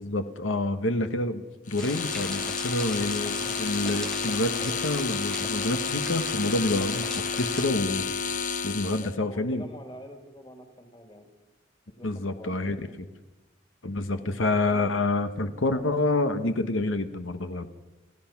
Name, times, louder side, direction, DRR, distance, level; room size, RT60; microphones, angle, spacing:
voice 1, 0.0-7.1 7.4-8.0 8.6-9.6 12.0-12.8 13.8-17.7, left 2 dB, 90° left, 10 dB, 1.2 m, -28 dB
sound 1, 1.7-9.1, left 5 dB, 40° left, 1.0 m, -31 dB
sound 2, 1.8-7.7, equal, 5° left, 0.8 m, -39 dB
voice 2, 9.0-11.3 11.9-13.0 14.2-14.3 14.7-14.9 15.7-15.9, equal, 25° left, 7 dB, 2.4 m, -46 dB
28.5 x 15.5 x 5.9 m, 1.1 s
head